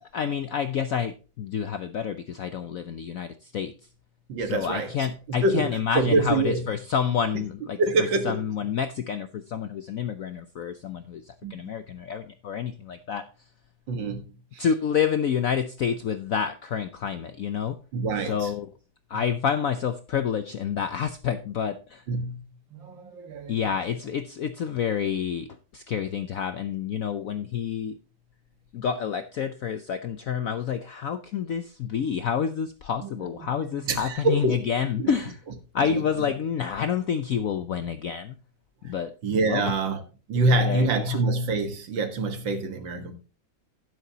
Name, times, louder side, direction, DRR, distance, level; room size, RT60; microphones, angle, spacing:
voice 1, 0.0-3.7 4.4-7.8 8.2-13.2 14.6-17.8 18.3-18.7 19.1-22.0 23.5-25.5 25.7-28.0 28.7-35.4 35.7-38.4 38.8-39.1 39.4-39.6 40.4-41.2, left 7 dB, 70° left, 0.8 m, -28 dB
voice 2, 4.3-6.7 7.3-7.4 7.8-8.4 11.4-11.7 13.9-14.2 14.5-14.7 17.9-18.5 19.1-19.2 22.1-22.4 22.7-23.7 33.0-34.6 35.0-35.1 35.8-36.3 38.8-38.9 39.2-40.0 40.3-43.2, right 2 dB, 70° right, 2.2 m, -26 dB
11.0 x 10.5 x 2.8 m
omnidirectional pair, 2.2 m